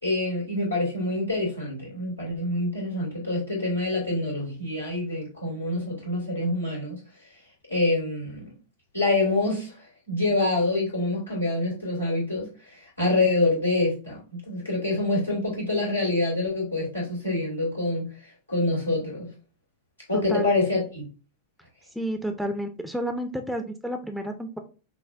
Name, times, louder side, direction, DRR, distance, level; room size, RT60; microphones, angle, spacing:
voice 1, 0.0-7.0 7.7-8.5 8.9-18.1 18.5-19.3 20.1-21.0, left 2 dB, 85° left, 2.0 m, -26 dB
voice 2, 20.1-20.6 21.9-24.6, right 1 dB, ahead, 0.4 m, -30 dB
5.6 x 2.2 x 2.4 m
figure-of-eight pair, 90°, 0 cm